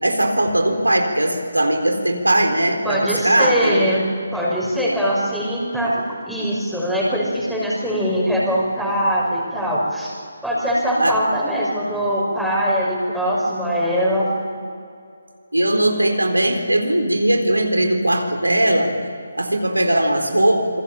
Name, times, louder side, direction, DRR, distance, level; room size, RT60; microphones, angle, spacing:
voice 1, 0.0-3.9 11.0-11.2 15.5-18.9 19.3-20.8, right 1 dB, 85° right, 3 dB, 4.0 m, -19 dB
voice 2, 2.8-4.1 4.3-10.1 10.4-14.3, equal, ahead, -6 dB, 5.7 m, -22 dB
27.5 x 22.5 x 7.5 m, 2.3 s
figure-of-eight pair, 150°, 0 cm